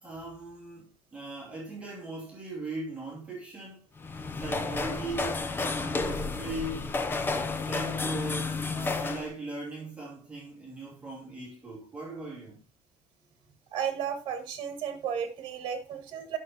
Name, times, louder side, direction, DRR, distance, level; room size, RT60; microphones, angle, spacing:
voice 1, 0.0-3.9 4.3-7.0 7.5-12.6, right 2 dB, 10° right, 2.6 m, -39 dB
sound 1, 4.0-9.3, left 3 dB, 20° left, 0.7 m, -31 dB
voice 2, 13.7-16.4, right 8 dB, 45° right, 1.8 m, -33 dB
10.5 x 6.4 x 2.9 m
cardioid pair, 175°, 12 cm